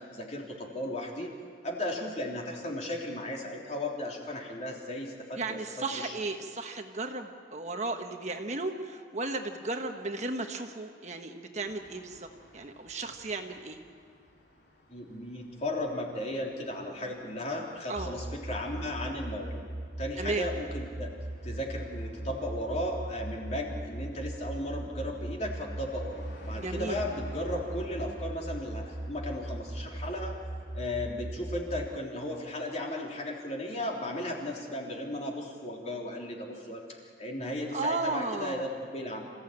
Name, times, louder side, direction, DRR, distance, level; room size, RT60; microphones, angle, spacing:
voice 1, 0.0-1.3 1.6-6.1 14.9-19.6 20.0-21.1 21.4-30.4 30.7-39.2, left 1 dB, 40° left, -1 dB, 3.5 m, -35 dB
voice 2, 5.4-12.3 12.5-13.8 17.9-18.1 20.2-20.5 26.6-27.0 37.7-38.7, right 3 dB, 40° right, 4 dB, 1.3 m, -34 dB
sound 1, 11.7-31.0, left 1 dB, 65° left, 3.3 m, -55 dB
sound 2, 18.0-32.0, right 1 dB, 20° right, 0.5 m, -39 dB
27.5 x 15.5 x 8.9 m, 2.2 s
head